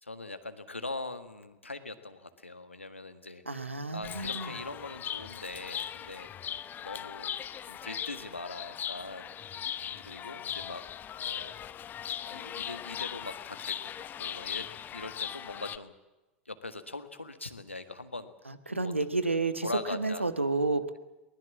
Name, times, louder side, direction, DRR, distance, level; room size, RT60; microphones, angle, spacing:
voice 1, 0.0-7.3 7.6-9.3 9.6-10.8 11.2-11.6 12.3-13.9 14.2-14.7 14.9-15.9 16.5-18.3 18.7-18.9 19.6-20.3, left 2 dB, 90° left, 10 dB, 1.7 m, -42 dB
voice 2, 3.5-4.5 18.5-21.0, right 3 dB, 90° right, 12 dB, 1.4 m, -31 dB
Chirp tweet, 4.0-15.8, left 9 dB, 30° left, 1.0 m, -39 dB
23.5 x 20.0 x 7.3 m, 1.1 s
figure-of-eight pair, 85°, 6 cm